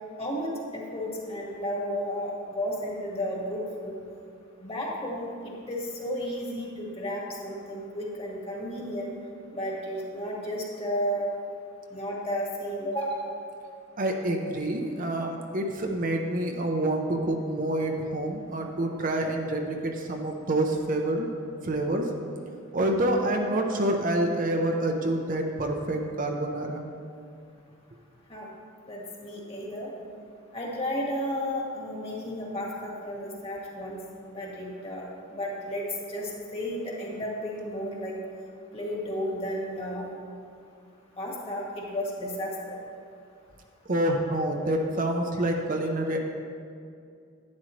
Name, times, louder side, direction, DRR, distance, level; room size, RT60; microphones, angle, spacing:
voice 1, 0.2-3.9 4.6-9.1 9.5-11.3 11.9-13.3 28.3-28.5 28.9-29.9 30.5-34.0 34.3-35.0 35.3-35.8 36.1-38.2 38.7-40.1 41.2-42.8, equal, 30° left, -3 dB, 1.8 m, -33 dB
voice 2, 14.0-21.3 21.6-22.1 22.7-26.8 43.9-46.2, right 1 dB, 40° right, 2 dB, 0.7 m, -27 dB
11.5 x 9.5 x 3.2 m, 2.3 s
head